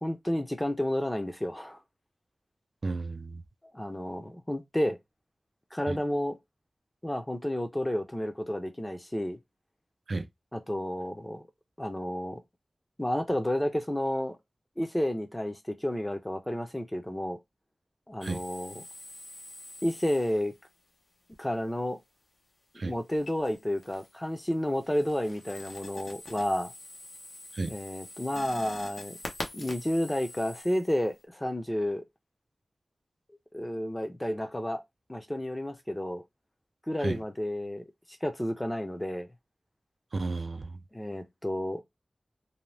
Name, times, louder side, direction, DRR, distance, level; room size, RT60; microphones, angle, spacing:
voice 1, 0.0-1.8 3.7-5.0 5.7-6.4 7.0-9.4 10.5-11.4 11.8-12.4 13.0-14.4 14.8-17.4 18.1-18.9 19.8-20.5 21.4-22.0 22.7-26.7 27.7-29.2 29.5-32.1 33.5-34.8 35.1-36.2 36.9-37.9 38.2-39.3 40.9-41.8, left 1 dB, 15° left, 0.6 m, -31 dB
voice 2, 2.8-3.4 5.9-6.0 10.1-10.3 18.2-18.4 22.7-22.9 27.5-27.7 37.0-37.2 40.1-40.8, right 3 dB, 60° right, 0.4 m, -33 dB
sound 1, 18.2-20.7 23.1-24.2 24.6-31.2, left 1 dB, 70° left, 0.8 m, -45 dB
2.7 x 2.1 x 3.2 m
wide cardioid pair, 85°, 0 cm